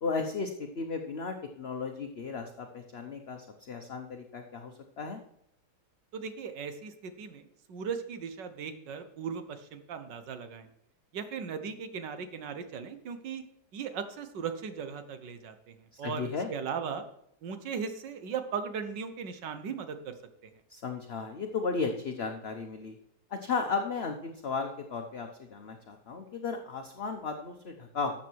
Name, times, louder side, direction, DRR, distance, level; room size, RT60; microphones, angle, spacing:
voice 1, 0.0-5.2 15.9-16.5 20.7-23.0 23.3-28.1, left 4 dB, 45° left, 4 dB, 1.0 m, -35 dB
voice 2, 6.1-10.7 11.1-13.4 13.7-17.0 17.4-20.1, right 6 dB, 75° right, 9 dB, 1.8 m, -38 dB
12.5 x 7.4 x 4.6 m, 0.75 s
omnidirectional pair, 1.9 m